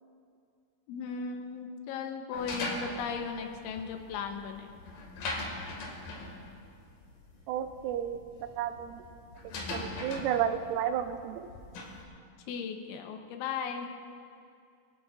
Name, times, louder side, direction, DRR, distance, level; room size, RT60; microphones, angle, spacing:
voice 1, 0.9-4.8 12.5-13.9, left 6 dB, 80° left, 4 dB, 3.0 m, -37 dB
sound 1, 2.3-12.0, left 2 dB, 55° left, 2.9 m, -41 dB
voice 2, 7.5-8.2 8.6-9.0 9.7-11.5, right 9 dB, 85° right, 9 dB, 3.1 m, -32 dB
22.5 x 16.0 x 2.5 m, 2.3 s
omnidirectional pair, 5.9 m